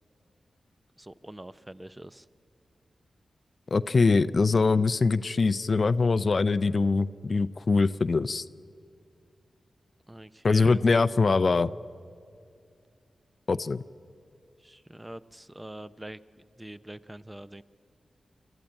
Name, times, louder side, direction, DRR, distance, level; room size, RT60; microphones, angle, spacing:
voice 1, 1.0-2.3 10.1-10.8 14.6-16.2 16.6-17.6, right 1 dB, 15° right, 14 dB, 0.6 m, -44 dB
voice 2, 3.7-8.4 10.4-11.7 13.5-13.8, left 4 dB, 55° left, 15 dB, 0.5 m, -23 dB
25.0 x 14.0 x 8.9 m, 2.4 s
cardioid pair, 55°, 0 cm